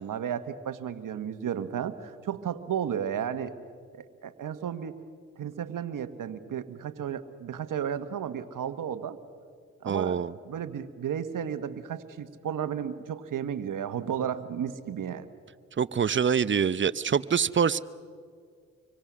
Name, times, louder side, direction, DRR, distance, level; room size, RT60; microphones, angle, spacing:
voice 1, 0.0-3.5 3.9-5.0 5.4-9.2 9.8-15.3, right 8 dB, 65° right, 1.5 m, -33 dB
voice 2, 9.9-10.3 15.8-17.8, right 7 dB, 35° right, 0.8 m, -25 dB
26.0 x 24.0 x 6.3 m
hypercardioid pair, 45°, 35 cm